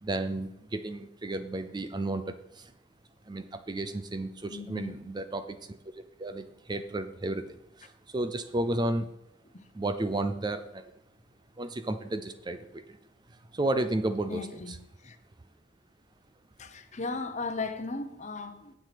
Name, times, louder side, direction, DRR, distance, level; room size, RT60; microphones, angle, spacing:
voice 1, 0.0-2.7 3.3-5.8 6.2-9.1 9.7-10.9 11.6-12.8 13.3-14.4, right 2 dB, 20° right, 0.5 m, -32 dB
voice 2, 4.5-5.0 9.4-9.7 14.3-15.2 16.6-18.7, left 3 dB, 35° left, 0.8 m, -37 dB
9.3 x 7.5 x 5.1 m
head